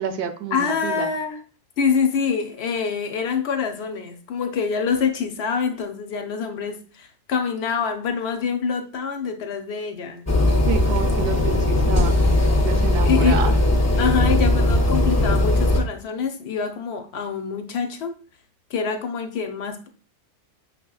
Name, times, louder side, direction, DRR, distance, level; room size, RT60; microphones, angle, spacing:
voice 1, 0.0-1.1 10.7-12.3 12.6-13.5, right 7 dB, 70° right, 7 dB, 0.8 m, -28 dB
voice 2, 0.5-1.4 1.8-10.3 13.0-13.5 14.0-18.1 18.7-19.9, left 6 dB, 65° left, 6 dB, 0.8 m, -25 dB
sound 1, 10.3-15.8, left 1 dB, 25° left, 0.4 m, -19 dB
6.0 x 2.8 x 2.3 m, 0.39 s
omnidirectional pair, 1.3 m